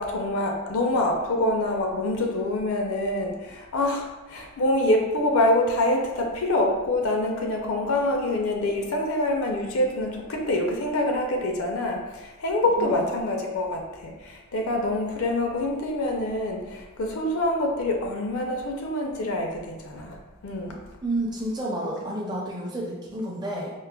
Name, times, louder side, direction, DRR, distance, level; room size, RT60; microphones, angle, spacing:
voice 1, 0.0-20.2 20.4-20.8, left 1 dB, 65° left, 1 dB, 0.5 m, -26 dB
voice 2, 12.8-13.2 21.0-23.7, right 1 dB, 20° right, -3 dB, 0.5 m, -30 dB
4.6 x 2.1 x 2.2 m, 1.1 s
head